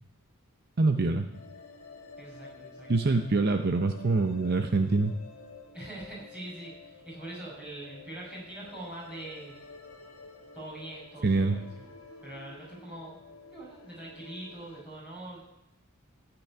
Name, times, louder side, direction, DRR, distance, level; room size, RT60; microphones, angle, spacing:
voice 1, 0.8-1.3 2.9-5.1 11.2-11.5, right 3 dB, 50° right, 6 dB, 0.7 m, -25 dB
sound 1, 1.3-14.8, left 4 dB, 80° left, 2.1 m, -50 dB
voice 2, 2.2-2.9 5.7-9.6 10.5-11.9 12.2-13.2 13.5-15.4, right 1 dB, 5° right, -7 dB, 6.5 m, -43 dB
14.0 x 6.1 x 9.9 m, 0.82 s
head